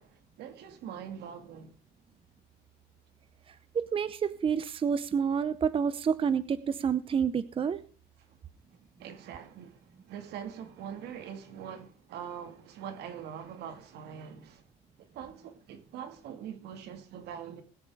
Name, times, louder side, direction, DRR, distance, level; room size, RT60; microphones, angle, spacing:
voice 1, 0.0-1.8 8.3-8.4 9.0-14.6 15.0-17.6, right 8 dB, 80° right, 2.0 m, -43 dB
voice 2, 3.5-7.8, right 7 dB, 30° right, 0.7 m, -29 dB
20.5 x 7.3 x 3.5 m
cardioid pair, 110°, 17 cm